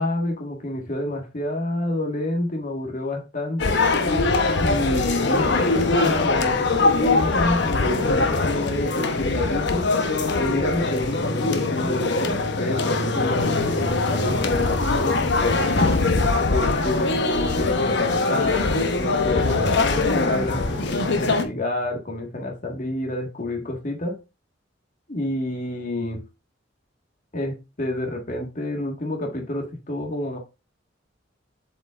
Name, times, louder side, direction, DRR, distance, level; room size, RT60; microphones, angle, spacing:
voice 1, 0.0-3.8 4.6-9.9 10.4-15.7 16.5-24.2 25.1-26.2 27.3-30.4, left 1 dB, 45° left, 1.8 m, -29 dB
sound 1, 3.6-21.5, left 3 dB, 65° left, 1.0 m, -22 dB
7.8 x 5.3 x 2.5 m
head